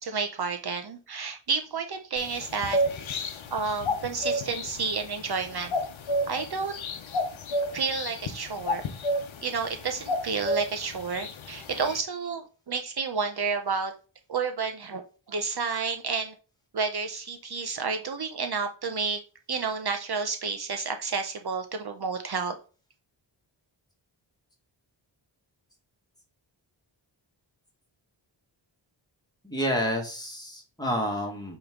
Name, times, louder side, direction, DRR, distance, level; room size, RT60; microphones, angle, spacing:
voice 1, 0.0-2.8 3.5-5.7 6.3-6.7 7.7-8.8 9.4-13.9 14.3-15.0 15.3-16.3 16.7-19.2 19.5-22.5, right 5 dB, 55° right, 6 dB, 0.7 m, -30 dB
sound 1, 2.2-12.0, equal, 85° left, 0.9 m, -32 dB
voice 2, 29.4-31.6, equal, 10° left, 0 dB, 1.6 m, -29 dB
8.4 x 3.2 x 3.7 m, 0.35 s
wide cardioid pair, 155°, 46 cm